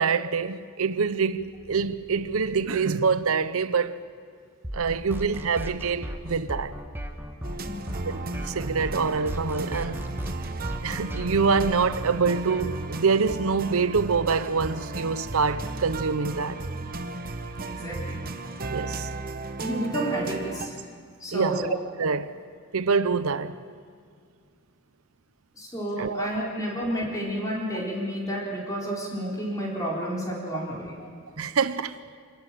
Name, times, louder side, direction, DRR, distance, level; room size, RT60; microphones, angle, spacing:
voice 1, 0.0-4.0 4.7-6.8 8.0-10.0 10.8-16.6 18.7-19.1 21.3-21.7 22.0-22.4 22.7-23.6 26.0-26.3 31.4-32.0, right 5 dB, 70° right, 0.7 m, -25 dB
sound 1, 4.6-13.0, equal, 10° right, 1.1 m, -36 dB
sound 2, 7.4-20.7, right 2 dB, 40° right, 1.0 m, -35 dB
voice 2, 7.6-8.0 17.6-18.2 19.6-20.8 21.2-21.7 25.5-31.1, equal, 15° left, 4.3 m, -31 dB
27.0 x 13.5 x 8.9 m
head